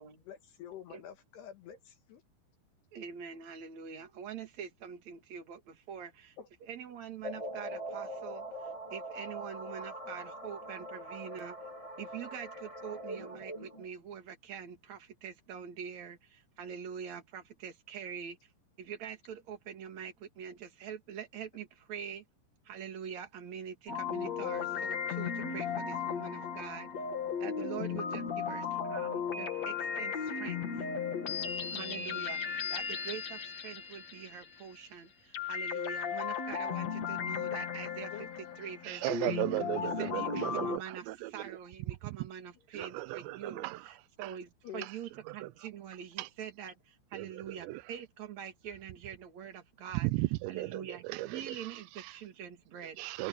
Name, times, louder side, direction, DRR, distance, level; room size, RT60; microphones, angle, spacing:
voice 1, 0.3-2.2 6.4-6.5 38.1-38.3 44.6-44.9, left 9 dB, 70° left, 3.6 m, -47 dB
voice 2, 2.9-6.3 6.6-8.5 8.9-11.6 12.0-18.4 18.8-22.2 22.6-26.9 27.4-30.6 31.7-38.1 38.6-39.4 39.8-50.1 50.5-51.0 51.3-53.0, right 8 dB, 45° right, 3.0 m, -44 dB
sound 1, 7.2-13.9, right 1 dB, 20° left, 0.9 m, -42 dB
sound 2, 23.9-34.8 35.3-40.8, left 7 dB, 45° left, 3.0 m, -36 dB
voice 3, 38.8-41.6 42.7-44.4 44.8-45.0 45.3-45.5 46.2-46.3 47.1-47.9 50.0-52.2 53.0-53.3, right 20 dB, 85° right, 2.9 m, -36 dB
omnidirectional pair, 5.1 m